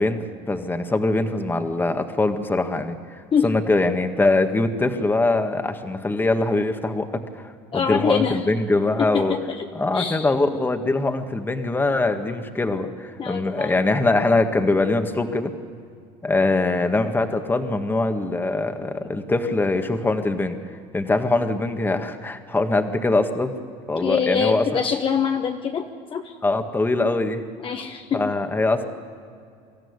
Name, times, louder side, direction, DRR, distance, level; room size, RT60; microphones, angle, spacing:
voice 1, 0.0-9.4 9.7-15.5 16.2-20.6 20.9-23.5 23.9-24.6 26.4-27.4 28.1-28.8, left 2 dB, 15° left, 7 dB, 1.7 m, -22 dB
voice 2, 7.7-8.4 9.0-9.7 9.9-10.3 13.2-13.8 23.9-25.9 26.1-26.3 27.6-28.3, left 7 dB, 35° left, 4 dB, 1.2 m, -24 dB
24.0 x 14.0 x 9.7 m, 2.3 s
supercardioid pair, 110°, 15 cm